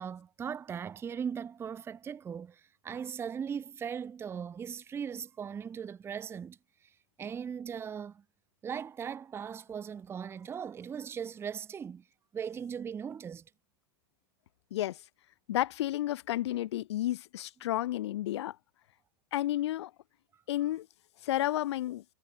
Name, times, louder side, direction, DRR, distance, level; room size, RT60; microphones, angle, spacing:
voice 1, 0.0-6.6 7.2-8.2 8.6-12.0 12.3-13.5, right 7 dB, 20° right, 0.5 m, -39 dB
voice 2, 14.7-15.0 15.5-18.6 19.3-19.9 20.5-20.9 21.2-22.0, left 14 dB, 85° left, 0.4 m, -31 dB
hypercardioid pair, 115°, 14 cm